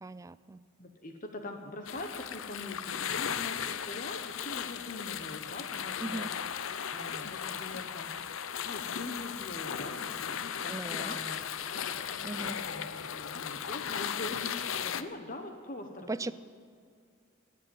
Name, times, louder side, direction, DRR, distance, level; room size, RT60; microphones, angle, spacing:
voice 1, 0.0-0.6 6.0-6.3 10.7-11.2 12.2-12.6 16.1-16.3, right 2 dB, 15° right, 16 dB, 0.3 m, -38 dB
voice 2, 0.8-6.3 6.9-8.1 8.6-16.1, left 2 dB, 40° left, 5 dB, 1.1 m, -43 dB
sound 1, 1.9-15.0, left 8 dB, 65° left, 0.6 m, -36 dB
19.0 x 7.8 x 9.0 m, 2.2 s
head